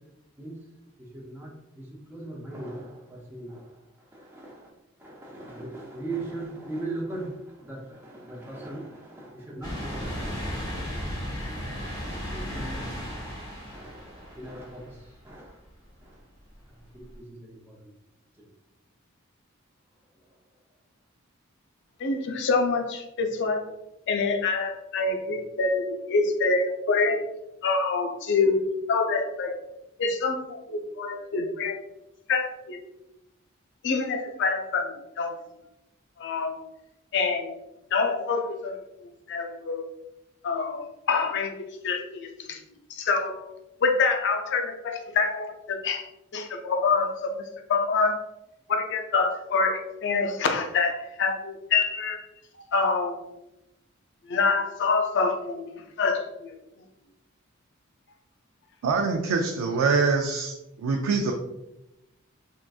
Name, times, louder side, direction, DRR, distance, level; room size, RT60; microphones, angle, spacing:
voice 1, 1.1-1.5 1.8-1.9 2.1-3.6 4.1-4.6 5.0-7.3 7.6-10.8 12.3-12.4 13.7-14.8 15.3-15.5 16.9-17.0 17.4-17.6, right 2 dB, 10° right, -4 dB, 0.5 m, -38 dB
sound 1, 9.6-15.2 15.7-15.8 17.1-17.2, equal, 20° left, 0.8 m, -35 dB
voice 2, 22.0-23.7 24.1-27.2 27.6-28.6 28.9-29.5 30.0-31.8 32.3-32.8 33.8-35.4 36.2-36.6 37.1-37.5 37.9-38.8 39.3-39.8 40.4-42.6 42.9-43.5 43.8-48.2 48.7-52.3 52.7-53.2 54.3-56.5, left 4 dB, 60° left, 4 dB, 0.4 m, -26 dB
voice 3, 58.8-61.3, right 4 dB, 85° right, 2 dB, 0.3 m, -24 dB
3.6 x 2.5 x 2.3 m, 0.90 s
head